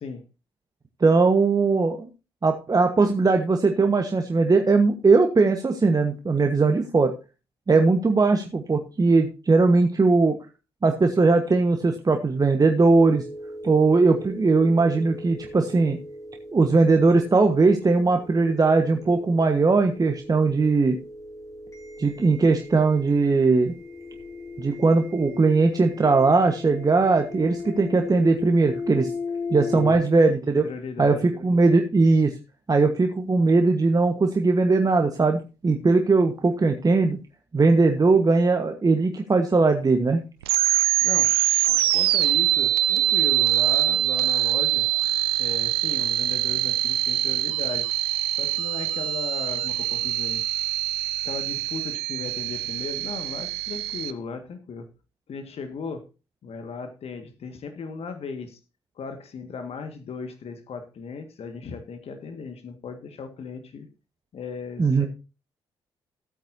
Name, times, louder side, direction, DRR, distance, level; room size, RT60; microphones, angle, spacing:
voice 1, 1.0-2.1 2.4-7.1 7.7-10.4 10.8-13.2 13.6-16.0 16.5-21.0 22.0-23.7 24.6-29.1 29.5-30.6 31.0-32.3 32.7-37.2 37.5-40.2 64.8-65.1, right 3 dB, 30° right, 5 dB, 1.3 m, -20 dB
sound 1, 13.0-30.0, left 3 dB, 25° left, 3.9 m, -37 dB
voice 2, 29.7-30.1 30.6-31.3 41.0-41.3 41.9-44.9 45.4-47.9 48.4-50.4 51.2-54.9 55.3-56.0 56.4-58.6 59.0-63.9 64.3-65.1, left 5 dB, 55° left, 7 dB, 1.8 m, -36 dB
sound 2, 40.4-54.1, right 14 dB, 85° right, 0.4 m, -24 dB
15.0 x 8.8 x 2.7 m, 0.30 s
hypercardioid pair, 40°, 12 cm